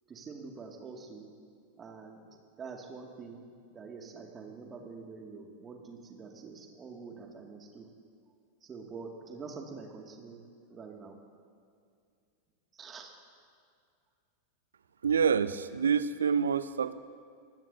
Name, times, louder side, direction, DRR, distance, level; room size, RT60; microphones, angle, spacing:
voice 1, 0.1-1.3 1.8-2.2 2.6-3.5 3.7-7.9 8.6-10.4 10.7-11.2 12.8-13.1, right 4 dB, 20° right, 1 dB, 2.3 m, -45 dB
voice 2, 15.0-16.9, right 6 dB, 70° right, 14 dB, 0.6 m, -27 dB
25.0 x 19.5 x 2.8 m, 2.3 s
figure-of-eight pair, 90°, 0 cm